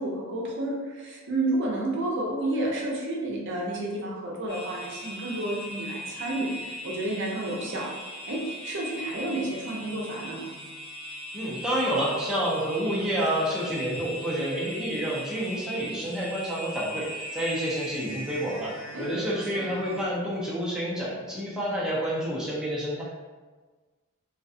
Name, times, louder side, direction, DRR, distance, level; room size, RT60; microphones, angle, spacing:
voice 1, 0.0-7.9 8.3-10.4 18.9-19.4, right 1 dB, 60° right, -3 dB, 0.5 m, -31 dB
sound 1, 4.5-20.1, equal, 60° left, 0.8 m, -39 dB
voice 2, 11.3-23.0, equal, 5° right, -8 dB, 0.5 m, -29 dB
2.4 x 2.2 x 2.6 m, 1.3 s
head